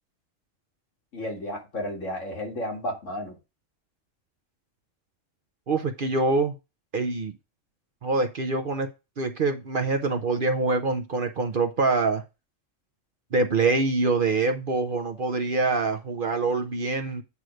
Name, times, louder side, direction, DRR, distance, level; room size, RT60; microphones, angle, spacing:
voice 1, 1.1-3.4, left 1 dB, 70° left, 2.5 m, -32 dB
voice 2, 5.7-6.5 6.9-7.3 8.0-8.9 9.2-12.2 13.3-17.2, right 3 dB, 50° right, 0.8 m, -25 dB
8.3 x 3.1 x 6.3 m
omnidirectional pair, 1.3 m